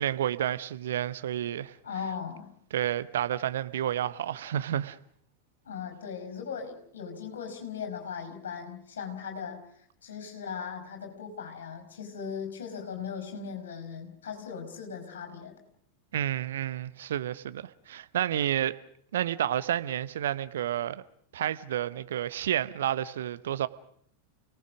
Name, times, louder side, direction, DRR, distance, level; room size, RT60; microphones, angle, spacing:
voice 1, 0.0-1.7 2.7-5.0 16.1-18.8 19.1-21.0 21.3-23.7, right 11 dB, 60° right, 0.8 m, -30 dB
voice 2, 1.8-2.5 5.6-9.6 10.0-15.5, left 6 dB, 65° left, 5.4 m, -38 dB
29.5 x 18.5 x 6.3 m
figure-of-eight pair, 90°, 0 cm